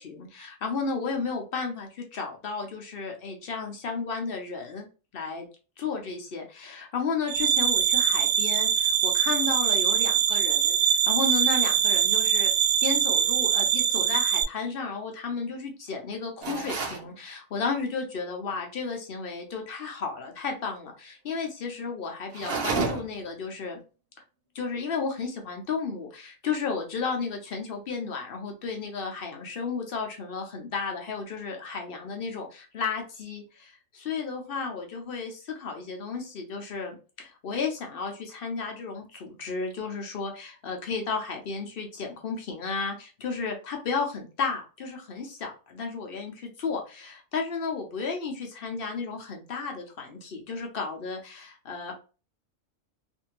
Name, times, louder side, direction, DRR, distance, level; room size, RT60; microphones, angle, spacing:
voice 1, 0.0-4.9 5.1-5.5 5.8-12.5 12.8-23.8 24.5-51.9, left 5 dB, 55° left, 3 dB, 0.7 m, -33 dB
sound 1, 7.3-14.4, right 8 dB, 75° right, 1.0 m, -23 dB
sound 2, 16.4-17.1 22.3-23.2, right 4 dB, 60° right, 0.7 m, -30 dB
2.6 x 2.6 x 2.8 m, 0.34 s
omnidirectional pair, 1.4 m